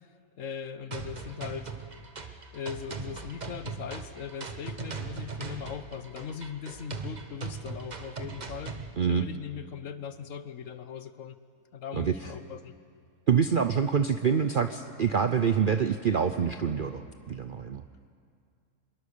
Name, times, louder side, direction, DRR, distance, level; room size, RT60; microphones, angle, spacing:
voice 1, 0.4-1.7 2.5-8.8 9.1-11.4 11.7-12.7, left 7 dB, 60° left, 12 dB, 1.2 m, -39 dB
sound 1, 0.9-8.9, right 4 dB, 30° right, 1.1 m, -39 dB
voice 2, 13.3-17.8, right 6 dB, 55° right, 9 dB, 0.6 m, -26 dB
25.0 x 21.5 x 6.8 m, 2.3 s
omnidirectional pair, 1.6 m